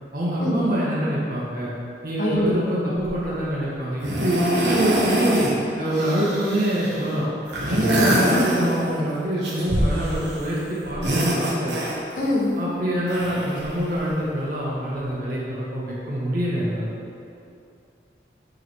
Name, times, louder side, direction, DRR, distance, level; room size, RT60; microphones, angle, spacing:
voice 1, 0.1-1.7 2.0-5.4 5.7-7.3 7.6-10.6 10.8-11.7 12.6-16.9, right 1 dB, 55° right, -7 dB, 1.6 m, -25 dB
sound 1, 3.0-3.4 4.0-5.6 5.9-7.0 7.5-9.0 9.4-10.5 10.8-12.3 13.1-14.1 15.0-15.1, equal, 80° right, 1.4 m, -25 dB
voice 2, 7.9-8.4 12.2-12.6, left 1 dB, 50° left, -6 dB, 1.5 m, -23 dB
9.5 x 3.9 x 4.6 m, 2.6 s
head